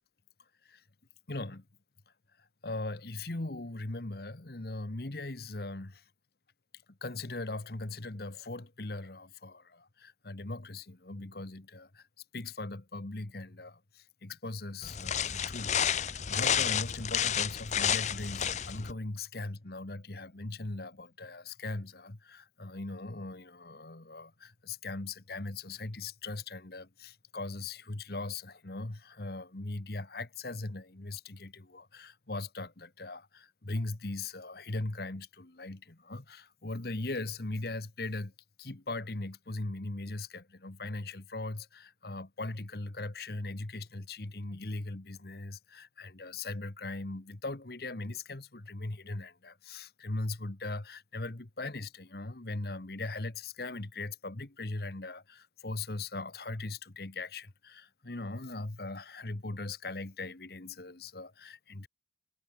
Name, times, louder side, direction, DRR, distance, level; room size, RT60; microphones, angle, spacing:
voice 1, 1.3-1.6 2.6-6.0 6.9-12.1 12.3-38.3 38.6-61.9, left 2 dB, 55° left, 1.4 m, -39 dB
sound 1, 14.8-18.9, left 8 dB, 40° left, 0.8 m, -30 dB
head